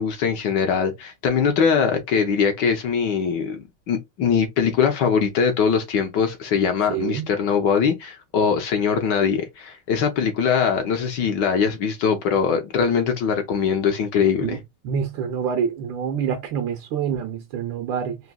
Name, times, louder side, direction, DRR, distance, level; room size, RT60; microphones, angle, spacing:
voice 1, 0.0-14.6, left 6 dB, 70° left, 1.2 m, -22 dB
voice 2, 6.9-7.3 14.4-14.6 14.8-18.2, right 7 dB, 75° right, 1.2 m, -26 dB
4.0 x 2.6 x 2.2 m
omnidirectional pair, 2.3 m